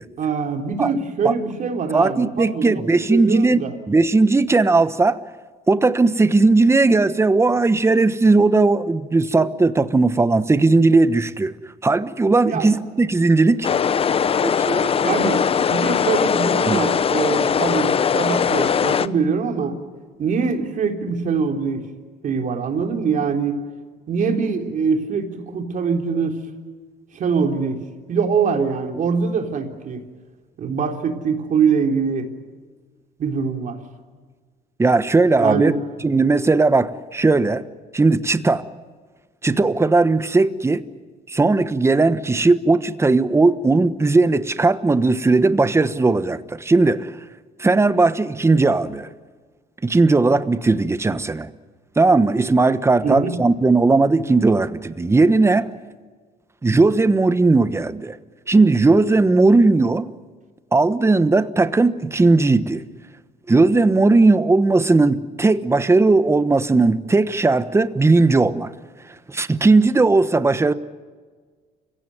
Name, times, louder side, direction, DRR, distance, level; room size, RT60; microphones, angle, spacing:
voice 1, 0.2-3.7 12.5-12.7 15.0-15.4 15.7-19.7 20.2-21.8 22.2-23.6 24.1-26.4 27.1-27.8 28.1-30.0 30.6-32.3 33.2-33.8 35.4-35.8 53.0-53.4, right 5 dB, 50° right, 3.7 m, -23 dB
voice 2, 1.9-5.2 5.7-11.5 11.8-13.7 14.4-15.3 16.7-16.8 34.8-35.7 36.0-37.6 37.9-38.6 39.4-40.8 41.3-47.1 47.6-49.1 49.8-51.5 52.0-55.7 56.6-58.2 58.5-60.1 60.7-62.8 63.5-68.7 69.3-70.7, right 3 dB, 15° right, 1.2 m, -17 dB
sound 1, 13.6-19.1, left 7 dB, 35° left, 0.7 m, -20 dB
29.0 x 17.0 x 9.5 m
cardioid pair, 110°, 17 cm